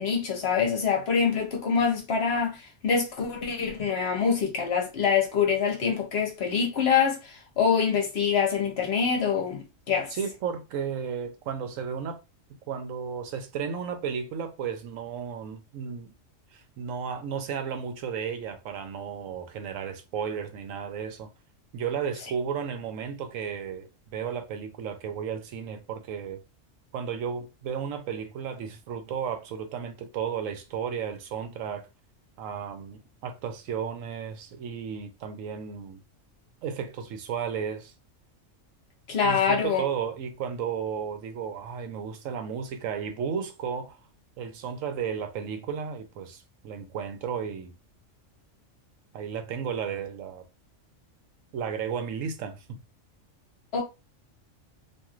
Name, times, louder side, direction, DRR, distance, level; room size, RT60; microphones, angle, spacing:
voice 1, 0.0-9.6 9.9-10.1 39.1-39.8 53.7-53.8, left 6 dB, 55° left, 1.0 m, -25 dB
voice 2, 10.1-12.2 12.7-16.1 16.5-21.3 21.7-26.4 26.9-31.9 32.4-36.0 36.6-37.9 39.2-44.0 44.4-47.7 49.1-50.4 51.5-52.8, right 7 dB, 80° right, 1.0 m, -33 dB
3.0 x 2.6 x 2.4 m
omnidirectional pair, 1.3 m